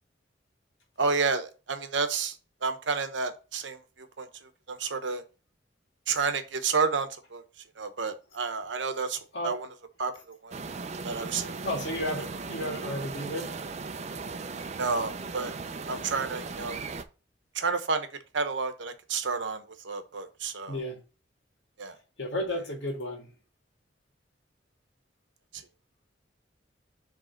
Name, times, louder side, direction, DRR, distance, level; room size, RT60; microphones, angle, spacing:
voice 1, 1.0-2.4 2.6-4.3 4.7-5.2 6.1-7.4 7.8-9.2 9.4-9.7 10.0-10.6 11.0-11.6 14.8-15.5 15.9-16.8 17.5-18.1 18.3-20.8 21.8-22.0 25.5-25.6, right 4 dB, 85° right, 0.9 m, -30 dB
sound 1, 10.5-17.0, right 4 dB, 35° right, 0.5 m, -37 dB
voice 2, 11.6-13.5 20.7-21.0 22.2-23.3, left 1 dB, 80° left, 2.0 m, -33 dB
5.0 x 3.5 x 5.6 m
head